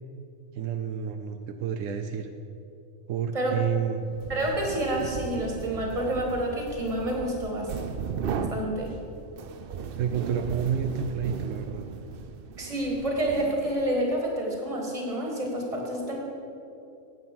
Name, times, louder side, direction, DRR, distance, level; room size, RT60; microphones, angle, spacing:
voice 1, 0.5-2.3 3.1-4.1 9.9-11.8, right 7 dB, 80° right, 6 dB, 1.0 m, -29 dB
sound 1, 4.1-14.0, right 6 dB, 60° right, 0.6 m, -36 dB
voice 2, 4.3-7.7 8.5-8.9 12.6-16.1, right 1 dB, 25° right, -1 dB, 1.9 m, -28 dB
9.4 x 8.0 x 6.0 m, 2.7 s
omnidirectional pair, 1.3 m